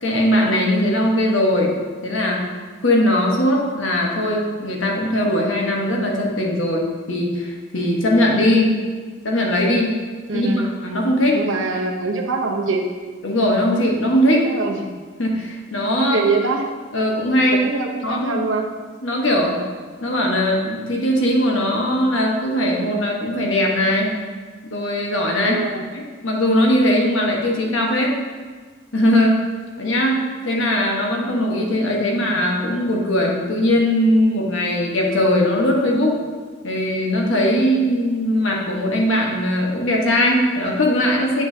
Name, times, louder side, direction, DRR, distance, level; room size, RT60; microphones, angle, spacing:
voice 1, 0.0-1.8 2.0-2.4 2.8-8.7 9.2-10.0 10.3-11.4 13.2-14.4 15.2-16.2 16.9-17.6 18.0-18.4 19.0-19.6 20.0-24.1 24.6-25.7 25.9-28.1 28.9-29.4 29.8-36.2 36.6-41.4, left 1 dB, 80° left, -1 dB, 1.3 m, -19 dB
voice 2, 10.3-10.7 11.3-12.9 14.3-15.0 16.0-16.7 17.6-18.7 25.5-25.9 31.8-32.4, right 3 dB, 85° right, 2 dB, 0.9 m, -24 dB
7.8 x 7.0 x 2.8 m, 1.5 s
head